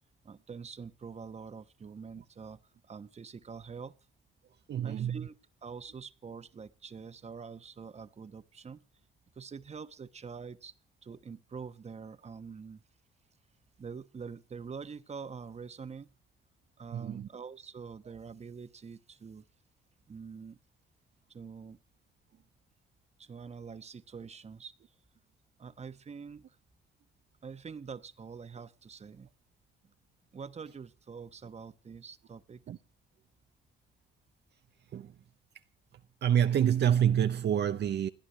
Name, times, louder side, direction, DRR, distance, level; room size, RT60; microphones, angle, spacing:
voice 1, 0.2-2.6 2.8-3.9 4.8-5.4 5.6-8.8 9.3-10.7 11.0-12.8 13.8-16.1 16.8-19.4 20.1-20.6 21.3-21.8 23.2-24.7 25.6-26.4 27.4-29.3 30.3-32.6, right 5 dB, 35° right, 1.1 m, -45 dB
voice 2, 4.7-5.3 16.9-17.3 32.7-32.8 34.9-35.2 36.2-38.1, right 9 dB, 60° right, 0.8 m, -27 dB
29.5 x 10.0 x 3.1 m
cardioid pair, 90°, 20 cm